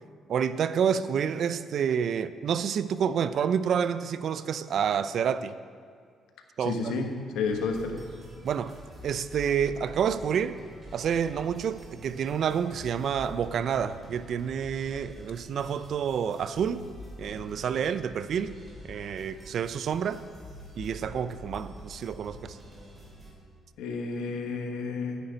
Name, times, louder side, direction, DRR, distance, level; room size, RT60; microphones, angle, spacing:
voice 1, 0.3-5.5 6.6-6.9 8.4-8.8 9.0-10.6 10.9-16.8 17.2-18.5 18.8-20.2 20.8-22.6, right 7 dB, 65° right, 14 dB, 0.4 m, -28 dB
voice 2, 6.6-8.0 23.8-25.2, left 4 dB, 90° left, 4 dB, 1.1 m, -31 dB
sound 1, 7.4-23.3, left 1 dB, 30° right, 2.7 m, -46 dB
10.0 x 9.6 x 3.9 m, 2.1 s
cardioid pair, 90°, 0 cm